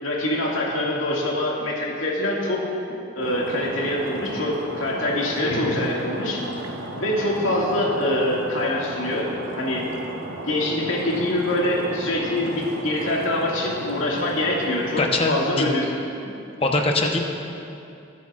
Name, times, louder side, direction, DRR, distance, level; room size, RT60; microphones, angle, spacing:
voice 1, 0.0-2.6 3.1-6.4 7.0-9.9 10.5-15.9, left 1 dB, 85° left, -3 dB, 2.1 m, -24 dB
Stream, 3.2-15.1, right 1 dB, 85° right, 1.1 m, -35 dB
voice 2, 5.5-5.8 15.0-15.6 16.3-17.2, left 2 dB, 30° left, 2 dB, 0.9 m, -23 dB
20.5 x 8.3 x 2.5 m, 2.7 s
head